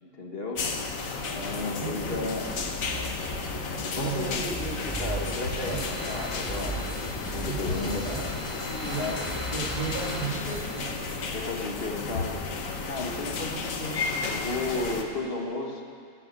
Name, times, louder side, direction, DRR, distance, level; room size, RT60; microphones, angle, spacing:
voice 1, 0.0-0.7 1.2-2.6 3.8-5.8 6.1-6.8 7.3-8.1 9.0-9.2 11.3-12.4 12.9-15.8, left 2 dB, 45° left, 1 dB, 1.8 m, -34 dB
sound 1, 0.6-15.0, left 4 dB, 70° left, 1.6 m, -33 dB
voice 2, 1.7-2.2 3.9-4.7 5.6-5.9 7.4-8.3 8.8-11.1, right 5 dB, 20° right, -6 dB, 2.1 m, -35 dB
sound 2, 2.0-10.6, right 1 dB, 5° left, 2.4 m, -38 dB
sound 3, 3.7-10.3, equal, 20° left, 3.6 m, -41 dB
15.5 x 8.5 x 8.2 m, 2.3 s
omnidirectional pair, 1.5 m